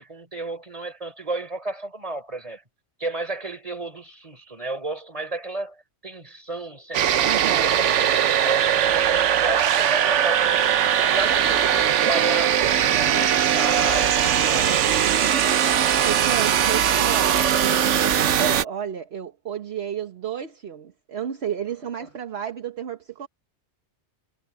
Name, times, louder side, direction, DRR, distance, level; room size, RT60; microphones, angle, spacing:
voice 1, 0.0-2.6 3.0-10.7 11.0-14.8 22.0-22.1, right 2 dB, 30° right, 4.1 m, -33 dB
sound 1, 6.9-18.6, right 9 dB, 90° right, 1.1 m, -20 dB
voice 2, 7.2-7.7 16.0-17.9 18.4-23.3, right 8 dB, 60° right, 1.3 m, -31 dB
sound 2, 11.1-18.5, left 3 dB, 55° left, 2.1 m, -41 dB
omnidirectional pair, 1.2 m